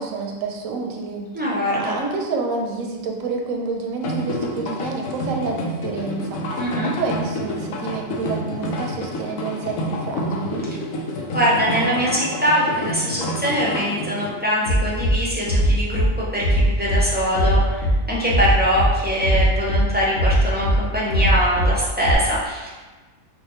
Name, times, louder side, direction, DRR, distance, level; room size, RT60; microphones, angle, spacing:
voice 1, 0.0-1.3 1.7-6.4 6.8-10.6, right 4 dB, 80° right, 1 dB, 1.0 m, -28 dB
voice 2, 1.3-2.0 6.6-6.9 11.3-22.7, equal, 15° right, -7 dB, 0.3 m, -23 dB
sound 1, 4.0-14.3, left 1 dB, 90° left, 1.0 m, -28 dB
Bass drum, 14.6-15.1 15.5-16.1 16.4-17.0 17.3-18.0 18.3-18.9 19.2-19.8 20.2-20.8 21.1-21.7 22.0-22.1, equal, 70° left, 1.2 m, -18 dB
4.8 x 2.2 x 3.0 m, 1.2 s
omnidirectional pair, 1.4 m